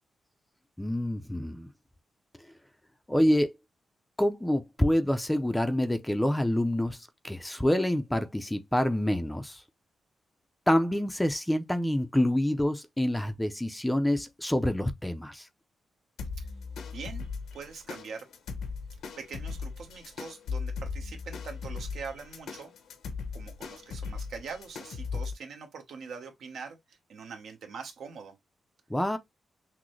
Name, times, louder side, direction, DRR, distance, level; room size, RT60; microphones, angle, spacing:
voice 1, 0.8-1.7 3.1-3.6 4.2-9.6 10.7-15.5 28.9-29.2, left 1 dB, 5° left, 0.4 m, -27 dB
sound 1, 16.2-25.3, left 5 dB, 85° left, 0.9 m, -38 dB
voice 2, 16.9-17.2 17.5-18.3 19.2-22.7 23.3-28.4, right 5 dB, 75° right, 1.1 m, -43 dB
6.0 x 2.1 x 3.1 m
wide cardioid pair, 150°, 0 cm